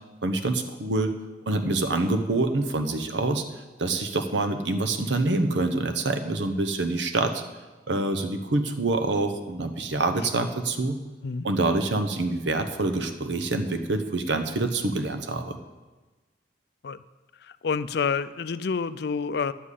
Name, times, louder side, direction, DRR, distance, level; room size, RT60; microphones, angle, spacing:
voice 1, 0.2-1.1 1.5-3.4 3.8-7.4 7.9-11.0 11.4-15.6, right 2 dB, 85° right, 7 dB, 1.1 m, -26 dB
voice 2, 17.4-19.5, left 5 dB, 60° left, 14 dB, 0.4 m, -28 dB
10.0 x 7.6 x 8.3 m, 1.2 s
head